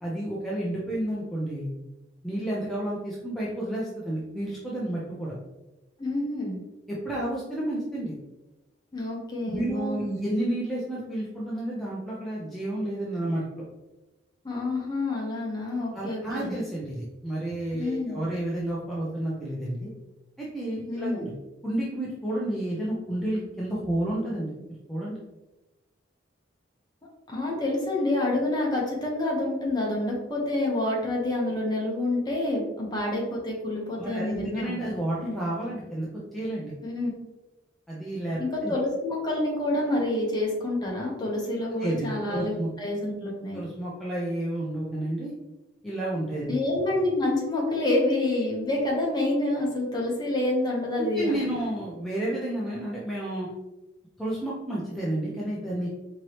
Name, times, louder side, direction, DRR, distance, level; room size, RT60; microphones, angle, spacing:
voice 1, 0.0-1.7 2.2-5.3 6.9-8.1 9.5-13.6 15.9-19.9 20.4-21.3 21.6-24.5 24.9-25.2 34.0-36.7 37.9-38.7 41.8-42.7 43.5-45.3 45.8-46.5 51.0-53.5 54.2-55.9, right 1 dB, ahead, -7 dB, 0.6 m, -31 dB
voice 2, 6.0-6.6 8.9-10.2 14.4-16.5 17.8-18.2 20.9-21.3 27.3-34.7 35.2-35.3 36.8-37.1 38.4-43.6 46.5-51.4, left 2 dB, 20° left, -3 dB, 1.0 m, -28 dB
4.6 x 3.0 x 2.9 m, 1.0 s
head